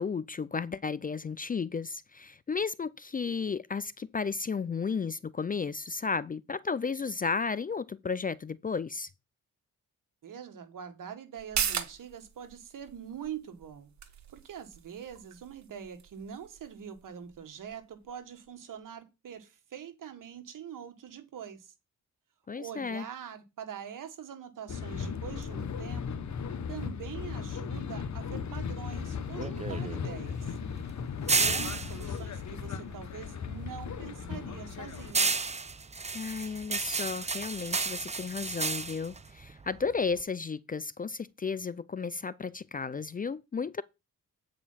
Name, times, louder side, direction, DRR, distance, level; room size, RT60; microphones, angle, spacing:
voice 1, 0.0-9.1 22.5-23.0 36.1-43.8, left 5 dB, 25° left, 0.4 m, -33 dB
voice 2, 10.2-13.9 14.3-21.7 22.6-26.2 26.7-30.6 31.3-35.3, right 8 dB, 75° right, 1.7 m, -44 dB
sound 1, 11.4-18.5 18.8-18.9, right 8 dB, 60° right, 1.2 m, -39 dB
sound 2, 24.7-35.1, left 6 dB, 60° left, 1.1 m, -37 dB
sound 3, 28.9-33.4 33.8-40.2, right 4 dB, 20° right, 0.6 m, -32 dB
8.3 x 5.0 x 5.6 m
cardioid pair, 75°, 32 cm